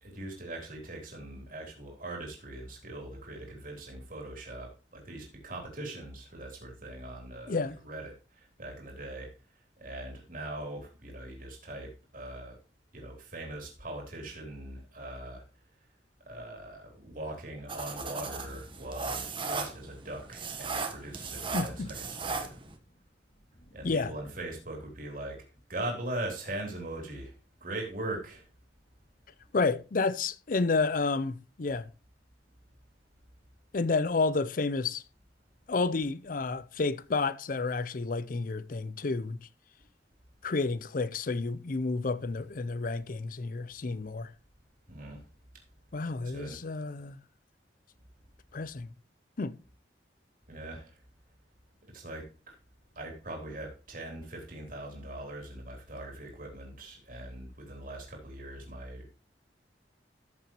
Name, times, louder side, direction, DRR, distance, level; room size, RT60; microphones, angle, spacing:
voice 1, 0.0-12.6 12.9-15.4 16.2-22.6 23.7-28.5 44.9-45.2 46.2-46.6 50.5-51.0 51.8-52.6 53.0-59.1, right 1 dB, 50° right, 3.4 m, -41 dB
sound 1, 17.7-22.8, right 4 dB, 30° right, 1.2 m, -37 dB
Thunder, 21.2-26.2 26.7-26.8 28.1-28.2, equal, 65° left, 2.6 m, -57 dB
voice 2, 21.5-21.9 23.8-24.1 29.5-31.9 33.7-35.0 35.7-39.4 40.4-44.3 45.9-47.2 48.5-48.9 49.4-49.5, left 3 dB, 50° left, 0.5 m, -30 dB
14.0 x 6.9 x 3.0 m
head